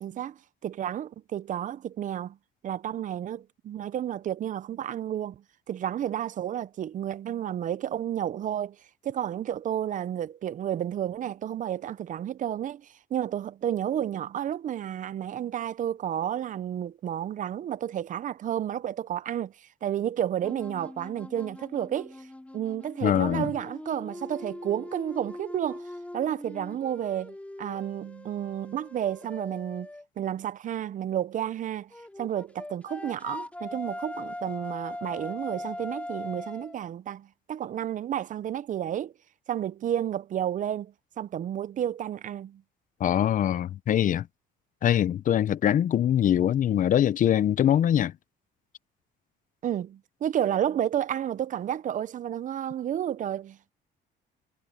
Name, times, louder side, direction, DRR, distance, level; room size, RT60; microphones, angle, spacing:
voice 1, 0.0-2.4 2.6-8.8 9.0-22.3 22.5-25.9 26.1-29.9 30.2-31.9 32.2-39.1 39.5-42.6 49.6-53.7, right 10 dB, 45° right, 0.6 m, -31 dB
sound 1, 20.4-30.1 31.9-36.8, left 1 dB, 5° left, 2.4 m, -41 dB
voice 2, 23.0-23.5 43.0-44.3 44.8-48.1, left 10 dB, 45° left, 0.6 m, -23 dB
cardioid pair, 125°, 19 cm